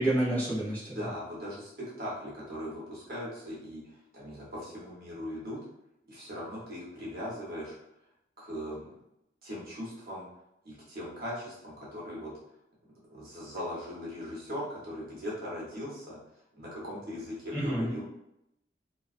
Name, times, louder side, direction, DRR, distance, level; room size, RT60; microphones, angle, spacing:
voice 1, 0.0-1.1 17.5-17.9, right 1 dB, 10° left, -8 dB, 0.8 m, -29 dB
voice 2, 1.0-5.6 6.1-7.8 8.4-8.9 9.4-10.3 10.6-12.3 13.1-16.2 16.6-18.0, equal, 55° right, -5 dB, 0.9 m, -39 dB
2.4 x 2.3 x 2.4 m, 0.81 s
head